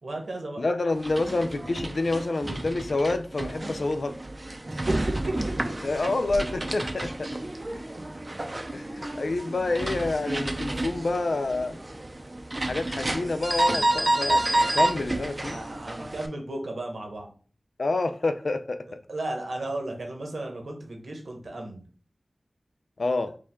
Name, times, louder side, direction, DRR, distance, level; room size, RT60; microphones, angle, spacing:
voice 1, 0.0-0.6 4.7-5.0 6.2-6.3 8.0-8.1 8.8-8.9 15.4-17.3 19.1-21.8, right 2 dB, 80° right, 1.0 m, -34 dB
voice 2, 0.6-4.2 5.8-7.3 8.7-11.8 12.6-15.6 17.8-18.8 23.0-23.3, left 2 dB, 75° left, 0.4 m, -28 dB
sound 1, 0.9-16.3, right 1 dB, 35° right, 0.5 m, -30 dB
5.1 x 2.3 x 3.6 m
wide cardioid pair, 50°, 0 cm